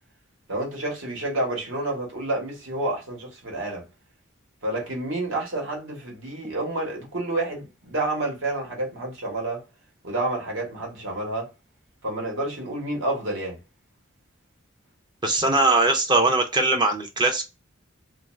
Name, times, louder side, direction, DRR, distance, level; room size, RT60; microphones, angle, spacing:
voice 1, 0.5-3.9 4.6-9.6 10.0-11.5 12.0-13.6, right 2 dB, 70° right, 1.2 m, -29 dB
voice 2, 15.2-17.4, right 2 dB, 20° right, 0.5 m, -21 dB
2.4 x 2.3 x 3.1 m
head